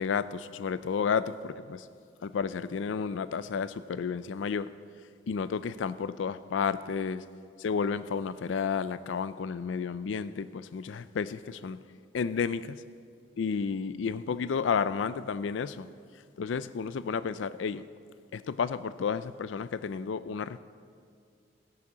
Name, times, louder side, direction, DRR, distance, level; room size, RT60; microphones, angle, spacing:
voice 1, 0.0-1.9 2.2-4.7 5.3-7.2 7.6-11.8 12.1-12.8 13.4-15.9 16.4-17.8 18.3-20.6, left 6 dB, 80° left, 15 dB, 0.4 m, -31 dB
16.5 x 8.3 x 6.1 m, 2.2 s
head